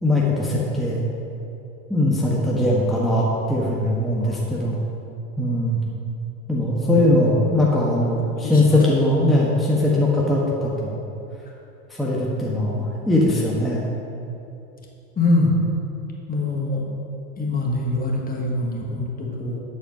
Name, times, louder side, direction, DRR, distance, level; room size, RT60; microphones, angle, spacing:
voice 1, 0.0-1.0 1.9-4.8 5.4-5.8 6.5-11.0 11.9-13.8, left 1 dB, ahead, -5 dB, 1.3 m, -20 dB
voice 2, 6.8-7.4 8.4-8.8 15.2-15.6 16.3-16.9 17.4-19.6, left 2 dB, 20° left, -2 dB, 1.6 m, -24 dB
10.5 x 4.5 x 5.3 m, 2.8 s
hypercardioid pair, 90°, 38 cm